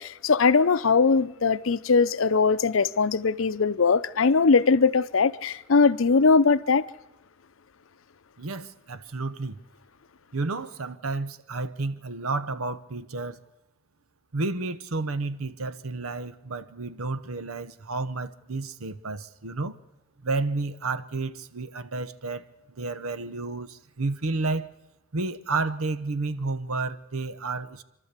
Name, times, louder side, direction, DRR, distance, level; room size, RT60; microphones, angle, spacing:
voice 1, 0.0-6.8, left 4 dB, 70° left, 0.6 m, -21 dB
voice 2, 8.4-9.6 10.3-13.4 14.3-19.8 20.2-22.5 22.8-24.7 25.1-27.8, right 3 dB, 90° right, 0.9 m, -31 dB
27.5 x 12.5 x 8.2 m
head